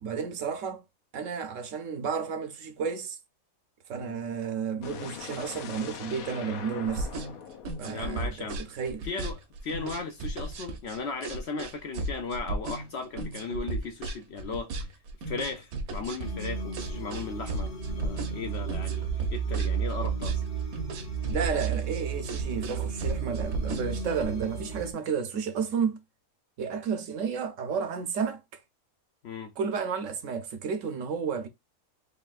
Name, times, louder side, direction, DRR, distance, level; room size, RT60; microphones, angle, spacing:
voice 1, 0.0-0.8 1.1-3.2 3.9-7.1 7.8-9.1 21.3-26.0 26.6-28.6 29.6-31.5, right 6 dB, 70° right, 0.9 m, -32 dB
sound 1, 4.8-8.8, left 8 dB, 80° left, 1.1 m, -42 dB
sound 2, 6.9-24.3, right 2 dB, 90° right, 1.3 m, -35 dB
voice 2, 7.8-8.6 9.0-9.3 9.6-15.0 15.3-19.0 19.3-20.4 29.2-29.5, left 4 dB, 60° left, 0.7 m, -36 dB
sound 3, 16.2-24.9, right 7 dB, 45° left, 1.0 m, -33 dB
4.0 x 3.3 x 2.4 m
omnidirectional pair, 1.5 m